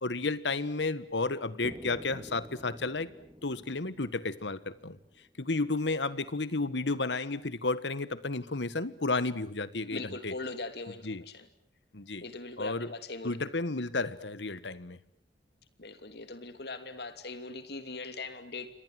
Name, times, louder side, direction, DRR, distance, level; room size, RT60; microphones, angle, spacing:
voice 1, 0.0-3.1 3.4-5.0 5.4-10.3 11.0-11.2 11.9-12.2 12.6-12.9 13.2-15.0, left 3 dB, 80° left, 15 dB, 1.5 m, -32 dB
sound 1, 1.6-5.5, equal, 15° right, 3.4 m, -49 dB
voice 2, 9.9-11.5 12.2-13.4 15.8-18.7, left 3 dB, 65° left, 10 dB, 2.9 m, -40 dB
29.5 x 25.5 x 7.8 m, 0.62 s
head